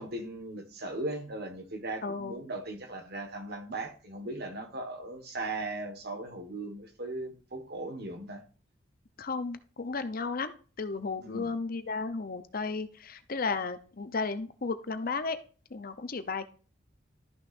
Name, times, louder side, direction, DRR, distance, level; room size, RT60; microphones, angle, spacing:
voice 1, 0.0-8.4 11.2-11.5, right 2 dB, 55° right, 1.5 m, -38 dB
voice 2, 2.0-2.4 9.2-15.4 15.7-16.5, left 4 dB, 50° left, 0.7 m, -34 dB
12.5 x 6.2 x 2.6 m
head